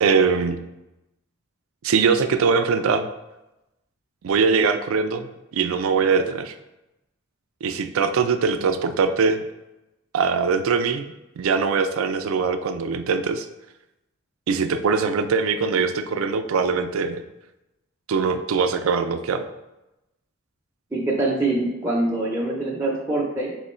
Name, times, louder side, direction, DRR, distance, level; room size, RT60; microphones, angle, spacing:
voice 1, 0.0-0.6 1.8-3.1 4.2-6.5 7.6-9.4 10.1-11.1 11.4-13.5 14.5-17.2 18.1-19.4, right 5 dB, 75° right, 9 dB, 0.4 m, -22 dB
voice 2, 20.9-23.6, right 2 dB, 10° right, -4 dB, 0.5 m, -24 dB
3.7 x 3.1 x 4.2 m, 0.95 s
head